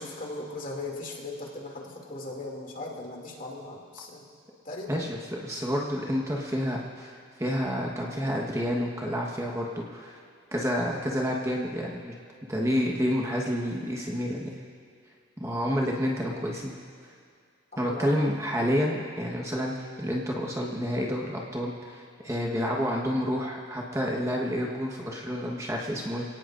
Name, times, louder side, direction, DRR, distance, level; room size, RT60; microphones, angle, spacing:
voice 1, 0.0-4.4 4.6-5.0 17.8-18.3, left 2 dB, 40° left, -1 dB, 2.5 m, -38 dB
voice 2, 4.9-10.2 10.5-12.1 12.5-14.5 15.4-16.8 17.8-26.2, equal, 15° right, -2 dB, 1.3 m, -29 dB
27.5 x 18.0 x 2.6 m, 2.3 s
head